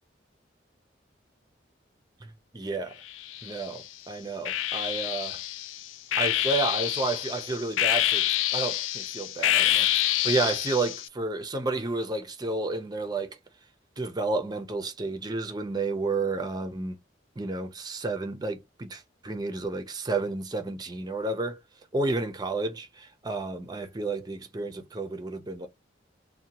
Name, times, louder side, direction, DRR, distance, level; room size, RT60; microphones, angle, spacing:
voice 1, 2.5-3.0 3.4-5.4 6.1-8.3 8.5-13.3 14.0-17.0 17.4-21.6 21.9-25.7, right 3 dB, 20° right, 0.5 m, -31 dB
sound 1, 3.1-3.8 4.5-11.1, left 13 dB, 90° left, 0.3 m, -27 dB
2.7 x 2.2 x 2.8 m
head